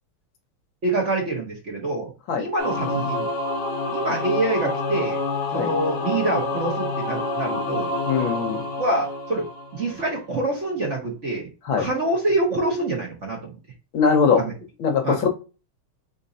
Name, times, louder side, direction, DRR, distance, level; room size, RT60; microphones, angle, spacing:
voice 1, 0.8-2.1 2.4-3.3 3.9-5.2 5.5-8.0 8.8-9.4 9.7-11.5 11.8-13.5 14.4-14.5 15.0-15.2, right 2 dB, 40° right, -1 dB, 1.3 m, -25 dB
Singing / Musical instrument, 2.6-10.1, left 2 dB, 50° left, 0.8 m, -28 dB
voice 2, 8.1-8.6 11.6-11.9 13.9-14.4 14.8-15.3, left 5 dB, 70° left, 5 dB, 1.6 m, -21 dB
4.4 x 4.1 x 2.6 m, 0.32 s
omnidirectional pair, 2.3 m